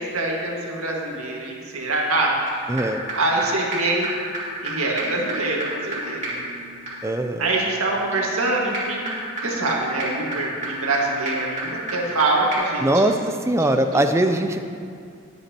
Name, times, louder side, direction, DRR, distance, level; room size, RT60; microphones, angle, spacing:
voice 1, 0.0-2.7 3.1-4.1 4.6-6.5 7.4-9.0 9.4-13.3 13.6-14.3, right 2 dB, 80° right, -2 dB, 1.8 m, -25 dB
sound 1, 2.5-2.6 2.8-2.9 3.1-3.2 3.4-3.5 3.7-3.8 4.0-4.1 4.3-4.4 4.7-4.8 5.0-12.2 12.5-12.6, right 1 dB, 30° right, 2.6 m, -32 dB
voice 2, 2.7-3.0 7.0-7.4 12.8-13.2 13.5-14.6, right 1 dB, 15° right, 7 dB, 0.4 m, -20 dB
20.5 x 8.2 x 2.9 m, 2.3 s
head